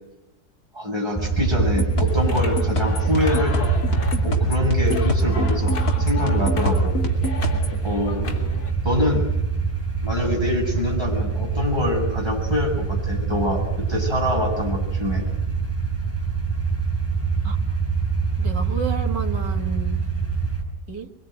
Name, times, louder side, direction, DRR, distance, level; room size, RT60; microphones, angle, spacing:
voice 1, 0.7-3.7 4.2-7.0 7.8-8.3 8.8-9.2 10.0-15.3, left 2 dB, 15° right, -1 dB, 7.8 m, -25 dB
sound 1, 1.2-20.6, right 5 dB, 5° left, 5.7 m, -24 dB
sound 2, 1.6-7.8, left 2 dB, 50° left, 3.3 m, -27 dB
sound 3, 2.0-8.7, left 4 dB, 90° left, 3.8 m, -36 dB
voice 2, 18.4-20.0 20.9-21.1, right 6 dB, 85° right, 3 dB, 2.8 m, -31 dB
24.5 x 23.5 x 9.4 m, 1.0 s
omnidirectional pair, 1.8 m